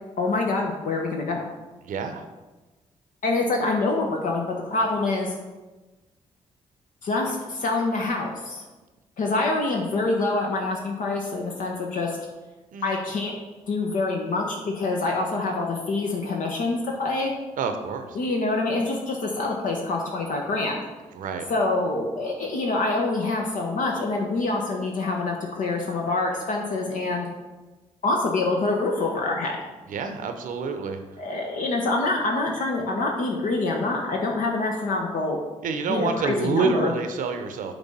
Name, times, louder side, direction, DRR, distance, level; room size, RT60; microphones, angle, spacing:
voice 1, 0.2-1.4 3.2-5.4 7.0-8.6 9.2-12.2 12.8-13.3 13.7-17.3 18.1-20.8 21.5-27.3 28.0-29.6 31.2-35.4 35.9-36.9, left 3 dB, 65° left, 0 dB, 0.9 m, -26 dB
voice 2, 1.8-2.2 12.7-13.0 17.6-18.2 21.1-21.5 29.9-31.0 35.6-37.7, right 4 dB, 70° right, 7 dB, 0.7 m, -27 dB
6.0 x 3.4 x 5.4 m, 1.2 s
supercardioid pair, 50°, 14 cm